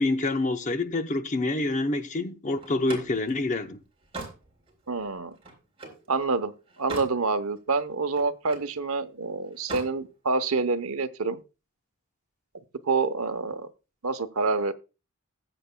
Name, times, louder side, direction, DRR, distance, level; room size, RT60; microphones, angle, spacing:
voice 1, 0.0-3.8, left 2 dB, 35° left, 0.8 m, -27 dB
Slam, 2.6-6.1 6.5-7.2 7.6-8.7 9.5-10.0, right 2 dB, 25° right, 3.6 m, -41 dB
voice 2, 4.9-5.4 6.1-6.5 6.8-11.4 12.9-13.7 14.0-14.7, right 4 dB, 80° right, 0.9 m, -27 dB
19.5 x 7.9 x 2.2 m
head